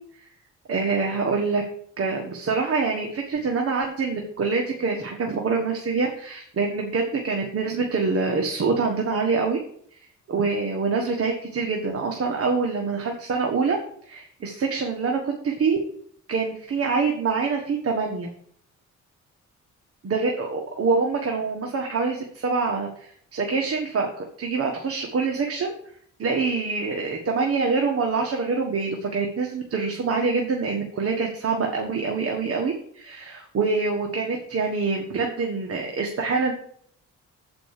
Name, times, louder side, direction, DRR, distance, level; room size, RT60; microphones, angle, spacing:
voice 1, 0.7-1.6 2.0-9.6 10.3-13.8 14.0-15.8 16.3-18.3 20.0-25.7 26.2-36.5, right 4 dB, 50° right, 2 dB, 1.5 m, -25 dB
7.8 x 5.2 x 6.6 m, 0.63 s
cardioid pair, 90°, 30 cm